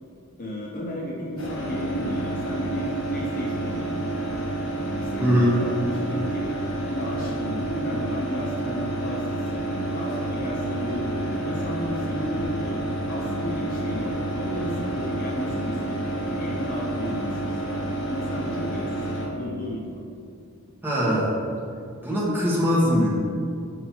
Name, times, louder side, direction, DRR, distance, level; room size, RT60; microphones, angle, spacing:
voice 1, 0.4-4.4 5.0-6.5 6.9-12.8 13.1-20.0, left 1 dB, 40° left, -2 dB, 0.7 m, -33 dB
sound 1, 1.4-19.3, right 1 dB, 85° left, 1.4 m, -29 dB
voice 2, 5.2-5.6 20.8-21.3 22.0-23.1, equal, 10° right, -7 dB, 1.4 m, -21 dB
5.7 x 5.4 x 4.6 m, 2.5 s
head